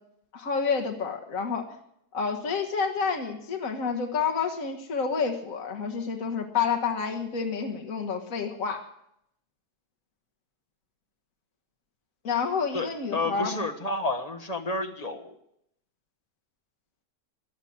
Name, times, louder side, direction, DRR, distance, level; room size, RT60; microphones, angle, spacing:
voice 1, 0.3-1.6 2.1-8.8 12.2-13.5, left 5 dB, 60° left, 2 dB, 1.8 m, -29 dB
voice 2, 12.7-15.3, left 2 dB, 25° left, 6 dB, 1.4 m, -30 dB
16.5 x 11.5 x 7.3 m, 0.75 s
omnidirectional pair, 1.6 m